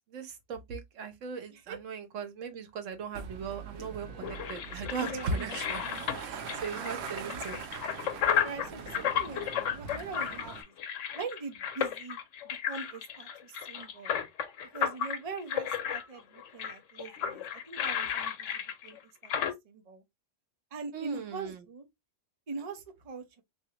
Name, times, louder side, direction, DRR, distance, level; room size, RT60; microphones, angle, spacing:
voice 1, 0.1-5.8 6.2-7.6 9.2-9.3 9.8-9.9 20.9-21.7, right 4 dB, 85° right, 1.1 m, -38 dB
sound 1, 3.1-10.6, right 7 dB, 65° right, 0.8 m, -43 dB
sound 2, 3.7-19.5, left 8 dB, 85° left, 1.0 m, -33 dB
voice 2, 5.0-6.0 6.7-7.4 8.4-10.7 11.1-12.2 12.4-14.1 14.7-20.0 20.7-21.9 22.5-23.4, right 4 dB, 35° right, 0.7 m, -42 dB
3.5 x 2.7 x 2.8 m
omnidirectional pair, 1.3 m